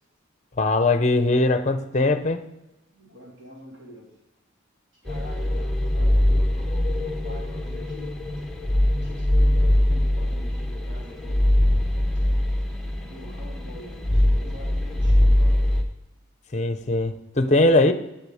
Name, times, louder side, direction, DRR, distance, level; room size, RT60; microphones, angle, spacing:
voice 1, 0.6-2.4 16.5-17.9, left 2 dB, 35° left, 10 dB, 0.7 m, -20 dB
voice 2, 2.9-4.2 5.0-8.2 8.9-11.9 13.0-15.7, equal, 65° right, -3 dB, 3.0 m, -46 dB
sound 1, 5.1-15.8, left 1 dB, ahead, 0.9 m, -22 dB
8.0 x 7.1 x 4.9 m, 0.95 s
head